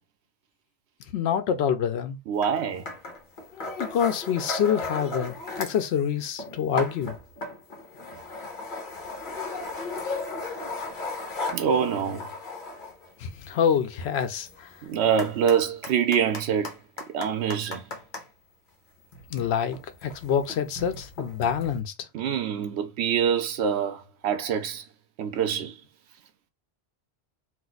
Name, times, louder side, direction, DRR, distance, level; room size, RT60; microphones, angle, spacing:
voice 1, 1.1-2.2 3.8-7.2 13.2-14.7 19.3-21.9, left 8 dB, 85° left, 0.9 m, -26 dB
voice 2, 2.3-2.9 11.5-12.3 14.8-16.8 17.1-17.8 22.1-24.8 25.2-25.8, right 7 dB, 85° right, 0.9 m, -25 dB
sound 1, 2.4-2.5 2.9-5.9 6.2-18.3 19.0-21.8, left 2 dB, 55° left, 1.0 m, -37 dB
2.5 x 2.4 x 3.9 m
omnidirectional pair, 1.1 m